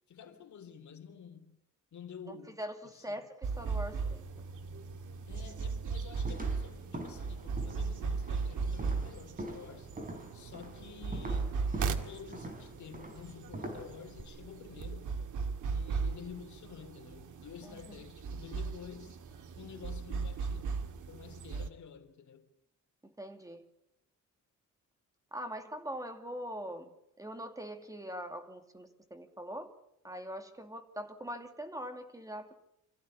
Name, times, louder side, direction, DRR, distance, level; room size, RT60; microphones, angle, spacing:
voice 1, 0.1-1.6 1.9-2.6 2.9-3.1 5.3-9.9 10.3-15.1 15.6-19.2 19.6-22.5, left 7 dB, 70° left, 3.3 m, -50 dB
voice 2, 2.3-4.2 17.6-18.0 23.0-23.6 25.3-29.7 30.0-32.5, equal, 10° right, 2.5 m, -42 dB
sound 1, 3.4-21.7, right 5 dB, 75° right, 2.1 m, -37 dB
sound 2, 6.2-14.2, right 1 dB, 25° right, 5.2 m, -44 dB
27.0 x 15.5 x 9.8 m
cardioid pair, 125°, 31 cm